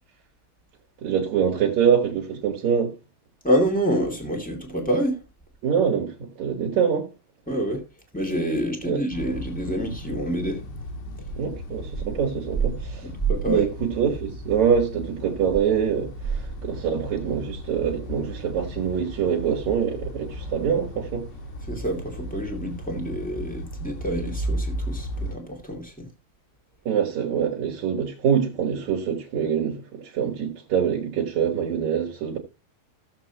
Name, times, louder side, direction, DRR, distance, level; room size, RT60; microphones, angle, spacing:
voice 1, 1.0-2.9 5.6-7.1 8.8-9.0 11.4-13.1 13.5-21.3 26.9-32.4, right 8 dB, 55° right, 2.3 m, -24 dB
voice 2, 3.4-5.2 7.5-7.8 8.1-10.6 13.3-13.6 21.7-26.1, right 1 dB, 5° left, 0.6 m, -27 dB
sound 1, 9.1-25.3, equal, 70° left, 3.9 m, -35 dB
16.5 x 7.4 x 2.9 m
omnidirectional pair, 5.1 m